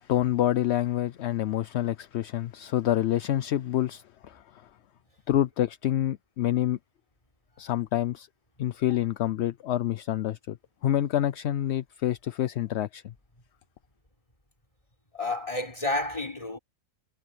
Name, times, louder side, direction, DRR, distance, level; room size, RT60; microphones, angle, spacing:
voice 1, 0.0-4.7 5.3-6.8 7.6-8.3 8.6-10.6 10.8-13.1, left 12 dB, 65° left, 0.8 m, -27 dB
voice 2, 15.1-16.6, left 2 dB, 25° left, 4.0 m, -30 dB
omnidirectional pair, 1.4 m